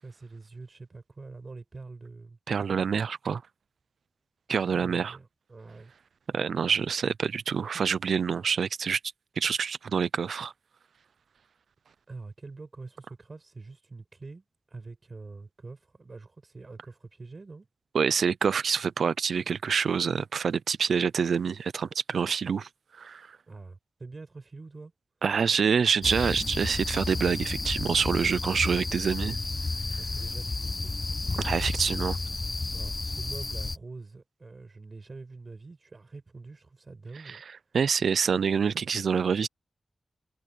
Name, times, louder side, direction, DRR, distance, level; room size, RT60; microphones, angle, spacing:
voice 1, 0.0-2.4 4.6-5.9 12.1-17.7 23.5-24.9 30.0-30.9 32.7-37.4, right 3 dB, 40° right, 5.4 m, -45 dB
voice 2, 2.5-3.4 4.5-5.2 6.3-9.0 9.4-10.5 17.9-22.7 23.0-23.3 25.2-29.4 31.4-32.2 37.3-37.4 37.7-39.5, right 6 dB, 90° right, 0.5 m, -26 dB
sound 1, 26.0-33.8, left 3 dB, 30° left, 0.3 m, -32 dB
wide cardioid pair, 130°, 0 cm